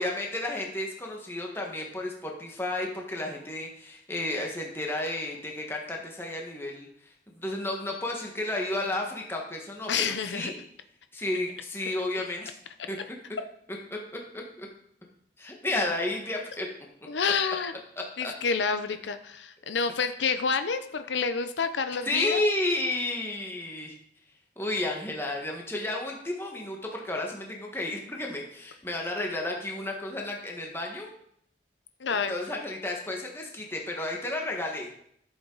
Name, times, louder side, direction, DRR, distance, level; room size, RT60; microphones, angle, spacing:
voice 1, 0.0-6.9 7.3-10.6 11.1-12.5 12.9-13.0 13.9-14.7 15.4-16.7 18.0-18.3 22.0-23.9 24.6-31.1 32.1-34.9, left 2 dB, 15° left, 0 dB, 1.5 m, -32 dB
voice 2, 9.9-10.5 17.1-17.7 18.2-22.4 32.0-32.3, left 5 dB, 75° left, 9 dB, 0.6 m, -28 dB
12.5 x 7.1 x 3.9 m, 0.70 s
head